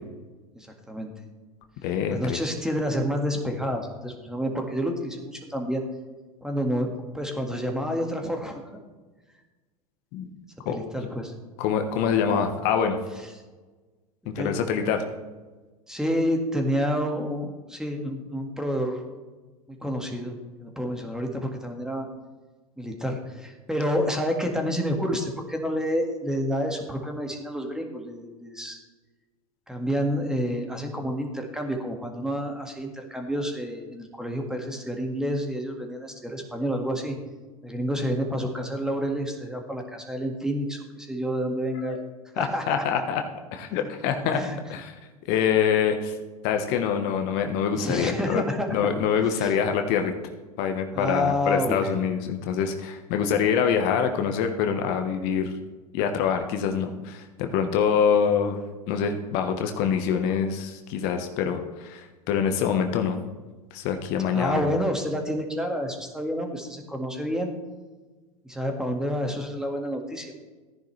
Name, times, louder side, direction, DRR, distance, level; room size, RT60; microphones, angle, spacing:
voice 1, 0.6-1.1 2.1-5.8 6.4-8.6 10.7-11.3 14.4-14.6 15.9-19.0 19.8-22.1 22.8-28.8 29.7-37.2 37.6-42.0 42.4-42.8 44.0-44.6 47.7-48.7 49.4-49.5 50.9-52.0 64.3-67.5 68.4-70.3, equal, 5° right, 3 dB, 1.8 m, -29 dB
voice 2, 1.8-2.4 10.1-10.3 10.6-10.8 11.6-13.0 14.3-15.0 41.9-42.0 42.4-43.2 43.5-44.4 44.7-44.9 45.3-46.2 46.4-48.4 48.7-50.1 50.6-55.5 55.9-58.6 58.9-63.2 63.7-64.8, left 7 dB, 55° left, 6 dB, 1.2 m, -25 dB
14.5 x 10.0 x 3.3 m, 1.3 s
hypercardioid pair, 90°, 19 cm